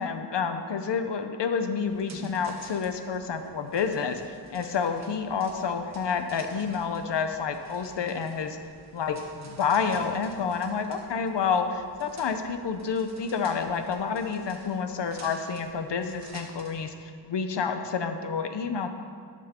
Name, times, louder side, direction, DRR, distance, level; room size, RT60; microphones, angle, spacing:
voice 1, 0.0-8.6 8.9-18.9, left 6 dB, 70° left, 7 dB, 0.8 m, -29 dB
sound 1, 1.9-16.9, right 2 dB, 40° right, 1.3 m, -51 dB
11.0 x 6.3 x 4.4 m, 2.2 s
wide cardioid pair, 105°, 44 cm